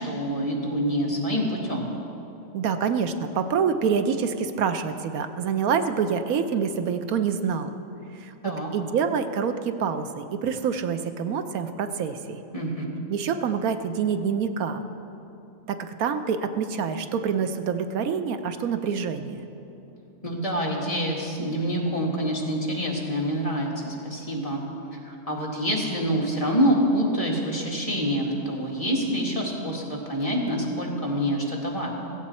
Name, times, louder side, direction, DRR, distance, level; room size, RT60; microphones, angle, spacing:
voice 1, 0.0-1.9 8.4-8.7 12.5-13.0 20.2-24.6 25.0-31.9, equal, 25° left, -3 dB, 2.0 m, -26 dB
voice 2, 2.5-7.7 8.2-12.4 13.1-14.8 15.7-19.5, right 6 dB, 85° right, 8 dB, 1.2 m, -26 dB
16.0 x 16.0 x 4.3 m, 2.9 s
omnidirectional pair, 1.5 m